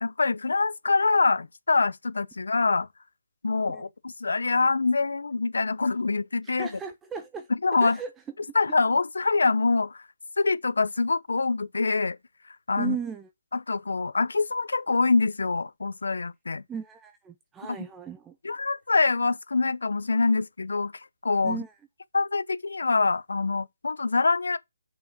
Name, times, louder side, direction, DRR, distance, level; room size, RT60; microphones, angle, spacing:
voice 1, 0.0-2.9 3.4-6.7 7.6-8.0 8.5-10.0 10.4-12.2 12.7-13.0 13.5-16.6 17.7-17.8 18.4-20.9 21.2-21.6 22.1-24.6, left 3 dB, 80° left, 0.7 m, -25 dB
voice 2, 6.4-7.5 7.8-8.1 12.8-13.3 16.7-18.4 21.4-21.7, right 7 dB, 10° right, 0.5 m, -36 dB
6.9 x 5.4 x 3.6 m
hypercardioid pair, 160°, 0 cm